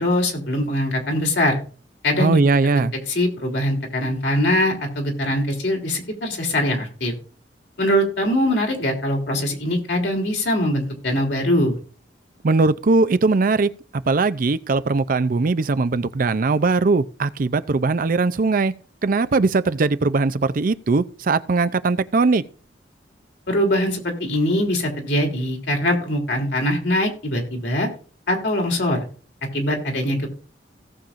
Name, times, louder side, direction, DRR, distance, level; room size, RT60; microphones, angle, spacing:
voice 1, 0.0-1.6 2.0-2.4 3.1-7.1 7.8-11.8 23.5-27.9 28.3-29.0 29.5-30.3, left 1 dB, 70° left, 3.2 m, -22 dB
voice 2, 2.2-2.9 12.4-18.7 19.0-22.4, right 3 dB, 50° right, 0.5 m, -20 dB
17.5 x 7.1 x 2.5 m
head